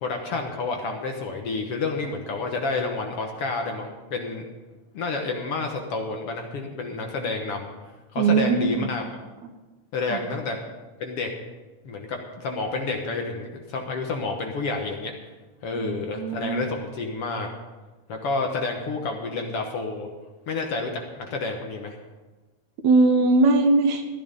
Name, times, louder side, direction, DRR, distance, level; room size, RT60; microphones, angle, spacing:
voice 1, 0.0-4.5 4.9-7.7 8.1-9.0 9.9-10.6 11.0-11.3 11.9-15.1 15.6-17.5 18.1-20.1 20.5-22.0, left 3 dB, 60° left, 3 dB, 1.8 m, -29 dB
voice 2, 8.2-8.9 10.1-10.2 15.7-16.6 22.8-24.0, right 3 dB, 70° right, 5 dB, 2.4 m, -20 dB
14.5 x 11.0 x 5.3 m, 1.2 s
omnidirectional pair, 3.5 m